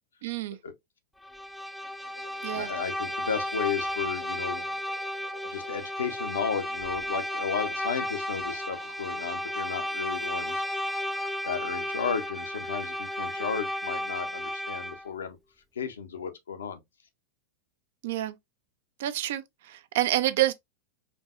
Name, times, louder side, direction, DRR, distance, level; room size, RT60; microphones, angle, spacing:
voice 1, 0.2-0.6 2.4-2.7 18.0-18.4 19.0-20.5, right 14 dB, 55° right, 0.4 m, -28 dB
Bowed string instrument, 1.2-15.1, left 1 dB, ahead, 0.4 m, -33 dB
sound 1, 2.0-14.0, right 2 dB, 80° right, 0.8 m, -52 dB
voice 2, 2.5-4.7 5.4-10.6 11.4-15.4 15.8-16.8, left 6 dB, 70° left, 0.7 m, -34 dB
4.5 x 2.6 x 2.4 m
figure-of-eight pair, 90°, 0 cm